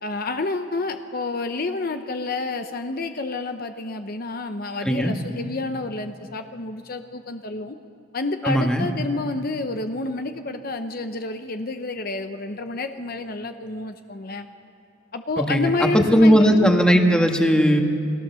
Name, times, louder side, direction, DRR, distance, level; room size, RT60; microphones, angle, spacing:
voice 1, 0.0-7.8 8.1-14.5 15.1-16.7, left 3 dB, 50° left, 7 dB, 0.9 m, -29 dB
voice 2, 4.8-5.1 8.4-8.9 15.5-17.8, equal, 5° left, 3 dB, 1.6 m, -17 dB
29.5 x 20.0 x 7.0 m, 2.9 s
head